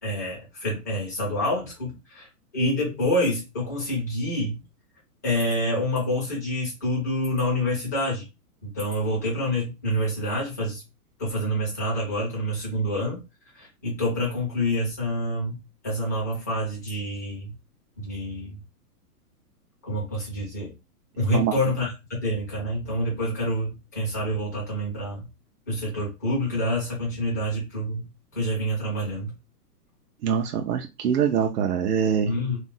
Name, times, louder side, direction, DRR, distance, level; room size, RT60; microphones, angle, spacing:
voice 1, 0.0-4.6 5.2-8.3 8.6-10.8 11.2-13.2 13.5-15.6 15.8-17.5 18.0-18.6 19.8-20.7 21.2-21.9 22.2-25.3 25.7-28.1 28.3-29.3 32.2-32.6, equal, 10° left, -5 dB, 0.4 m, -27 dB
voice 2, 30.2-32.3, right 8 dB, 80° right, 4 dB, 0.7 m, -24 dB
2.6 x 2.0 x 3.9 m, 0.27 s
hypercardioid pair, 165°, 46 cm